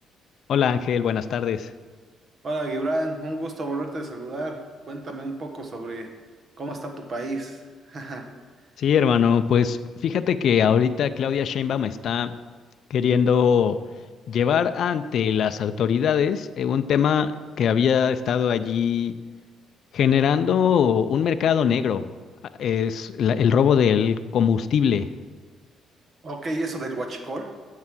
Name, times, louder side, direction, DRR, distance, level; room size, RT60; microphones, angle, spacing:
voice 1, 0.5-1.7 8.8-9.8 10.0-12.3 12.9-13.8 14.3-17.3 17.6-19.1 19.9-22.1 22.6-25.1, left 7 dB, 55° left, 11 dB, 0.4 m, -21 dB
voice 2, 2.4-6.1 6.6-8.2 26.2-27.5, right 2 dB, 35° right, 5 dB, 1.2 m, -31 dB
9.4 x 6.6 x 6.1 m, 1.5 s
cardioid pair, 155°, 0 cm